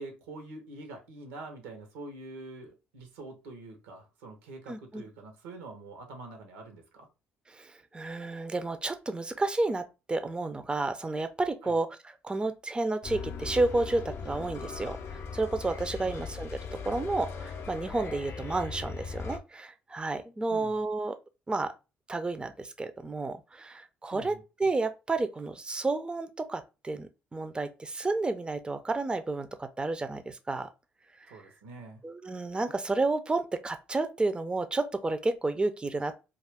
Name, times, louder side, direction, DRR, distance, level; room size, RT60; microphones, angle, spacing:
voice 1, 0.0-7.1 11.6-11.8 20.5-20.8 24.1-24.4 31.3-32.0, right 2 dB, 80° right, 0.8 m, -45 dB
voice 2, 4.7-5.0 7.5-16.5 16.9-21.2 21.5-21.7 22.1-30.7 31.3-31.4 32.0-36.1, right 2 dB, 15° right, 0.5 m, -31 dB
sound 1, 13.0-19.4, left 5 dB, 50° left, 0.5 m, -39 dB
2.4 x 2.4 x 3.4 m
hypercardioid pair, 50°, 5 cm